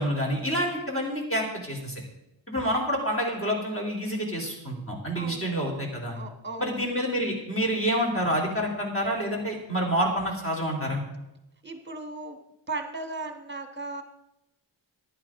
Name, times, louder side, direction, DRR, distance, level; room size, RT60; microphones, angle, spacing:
voice 1, 0.0-2.0 2.5-6.2 6.6-11.0, equal, 25° left, -1 dB, 3.2 m, -28 dB
voice 2, 5.1-5.6 6.1-6.8 11.6-12.4 12.7-14.0, right 3 dB, 20° right, 6 dB, 1.4 m, -36 dB
14.5 x 11.0 x 3.7 m, 0.90 s
wide cardioid pair, 110°, 48 cm